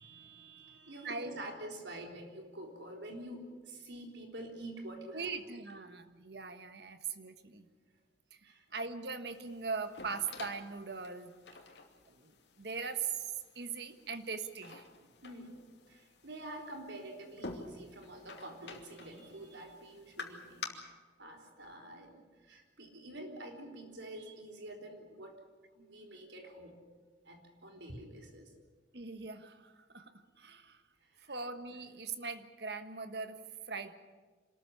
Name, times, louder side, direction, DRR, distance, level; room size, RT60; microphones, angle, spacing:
voice 1, 0.0-5.6 8.4-8.7 13.6-13.7 14.9-20.7 21.2-25.4 25.8-26.8 27.2-28.5 31.0-31.4, right 1 dB, 80° right, 3 dB, 3.8 m, -48 dB
voice 2, 1.0-1.4 5.1-7.7 8.7-11.4 12.2-13.2 13.5-14.8 28.9-30.1 30.4-30.8 31.3-33.4 33.7-34.0, right 5 dB, 60° right, 9 dB, 1.5 m, -40 dB
sound 1, 9.3-20.7, left 3 dB, 70° left, 2.6 m, -50 dB
26.0 x 14.0 x 9.8 m, 1.4 s
head